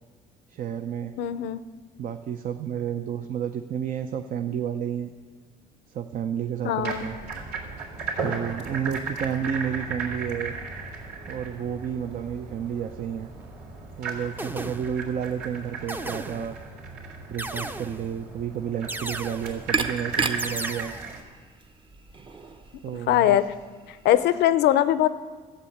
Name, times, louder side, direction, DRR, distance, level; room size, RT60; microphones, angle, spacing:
voice 1, 0.5-1.1 2.0-5.1 5.9-7.2 8.2-10.6 11.2-13.3 14.0-16.6 17.3-21.0 22.8-23.4, right 8 dB, 55° right, 7 dB, 0.7 m, -31 dB
voice 2, 1.2-1.6 6.6-7.0 23.1-23.5 24.0-25.1, left 12 dB, 80° left, 14 dB, 0.6 m, -21 dB
sound 1, 6.8-21.2, right 4 dB, 80° right, 3.4 m, -36 dB
sound 2, 13.4-13.6 14.4-15.1 15.9-16.7 17.4-18.2 18.9-19.7 20.4-21.2, right 1 dB, 10° right, 0.6 m, -36 dB
sound 3, 19.1-24.2, right 4 dB, 30° right, 0.9 m, -34 dB
13.0 x 8.0 x 8.6 m, 1.5 s
cardioid pair, 110°, 17 cm